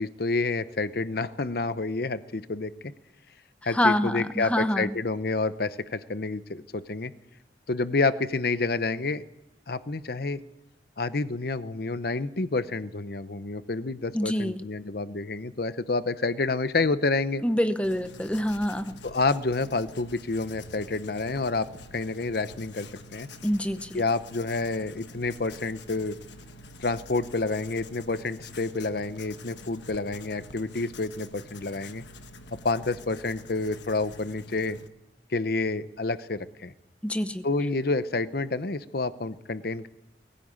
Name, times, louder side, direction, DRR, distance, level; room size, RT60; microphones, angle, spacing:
voice 1, 0.0-2.7 3.6-7.1 7.7-9.2 9.7-10.4 11.0-17.4 19.0-23.3 23.9-26.2 26.8-32.0 32.6-34.8 35.3-36.7 37.4-39.9, left 3 dB, 55° left, 13 dB, 0.8 m, -29 dB
voice 2, 3.6-4.9 14.1-14.6 17.4-19.0 23.4-24.0 37.0-37.4, left 1 dB, 5° left, 10 dB, 0.8 m, -26 dB
Writing, 17.8-34.9, left 2 dB, 75° left, 1.3 m, -47 dB
20.5 x 15.5 x 8.8 m, 0.88 s
head